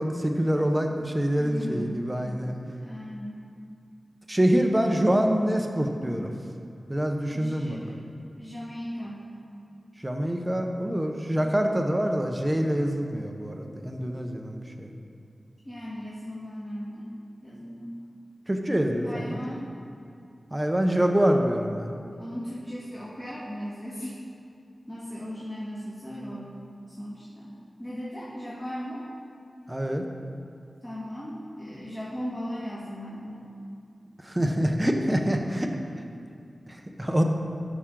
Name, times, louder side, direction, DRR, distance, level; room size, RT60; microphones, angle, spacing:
voice 1, 0.0-2.6 4.3-6.3 6.9-7.8 10.0-14.9 18.5-19.5 20.5-21.9 29.7-30.0 34.3-35.7 36.9-37.2, equal, 15° right, 3 dB, 0.8 m, -25 dB
voice 2, 1.4-2.0 2.4-3.4 7.3-8.1 8.4-9.2 15.6-17.1 17.4-17.9 19.0-19.7 22.2-24.2 24.9-26.6 26.9-27.5 27.8-29.0 30.8-33.4, equal, 20° left, -9 dB, 1.7 m, -37 dB
13.0 x 6.1 x 3.8 m, 2.5 s
wide cardioid pair, 100°, 0 cm